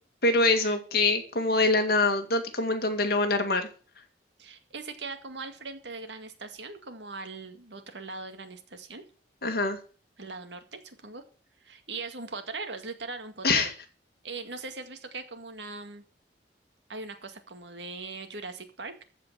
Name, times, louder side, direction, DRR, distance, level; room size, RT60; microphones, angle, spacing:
voice 1, 0.2-3.7 9.4-9.8 13.4-13.7, left 3 dB, 55° left, 6 dB, 2.2 m, -24 dB
voice 2, 4.4-9.0 10.2-11.2 11.6-13.7 14.2-16.0 16.9-18.9, right 3 dB, 80° right, 7 dB, 2.1 m, -40 dB
14.5 x 5.2 x 8.6 m, 0.39 s
head